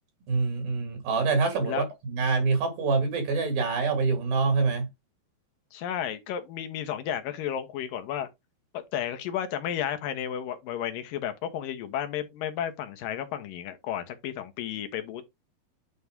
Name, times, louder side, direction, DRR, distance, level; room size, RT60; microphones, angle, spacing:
voice 1, 0.3-4.9, right 4 dB, 70° right, 3.7 m, -26 dB
voice 2, 5.7-8.3 8.7-15.3, left 10 dB, 70° left, 2.7 m, -33 dB
9.6 x 4.2 x 3.6 m
omnidirectional pair, 4.3 m